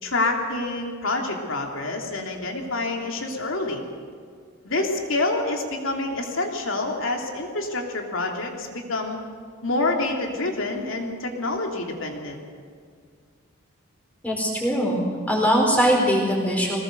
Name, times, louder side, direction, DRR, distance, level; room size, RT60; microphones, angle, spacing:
voice 1, 0.0-3.8 4.6-9.2 9.6-12.4, left 2 dB, 65° left, 1 dB, 3.0 m, -27 dB
voice 2, 14.2-15.0 15.3-16.8, equal, 5° left, -1 dB, 4.6 m, -21 dB
22.5 x 19.0 x 6.7 m, 2.1 s
head